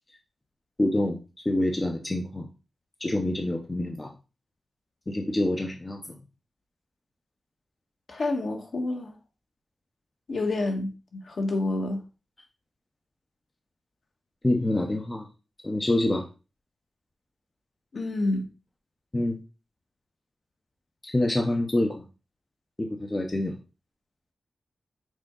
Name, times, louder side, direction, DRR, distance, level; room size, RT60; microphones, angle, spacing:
voice 1, 0.8-1.2 1.4-2.5 3.0-4.1 5.1-6.0 14.4-15.2 15.6-16.3 19.1-19.4 21.0-22.1 22.8-23.6, left 1 dB, 15° left, 0.7 m, -26 dB
voice 2, 8.1-9.1 10.3-12.0 17.9-18.4, left 2 dB, 55° left, 1.4 m, -28 dB
6.3 x 4.4 x 3.7 m
wide cardioid pair, 175°, 0 cm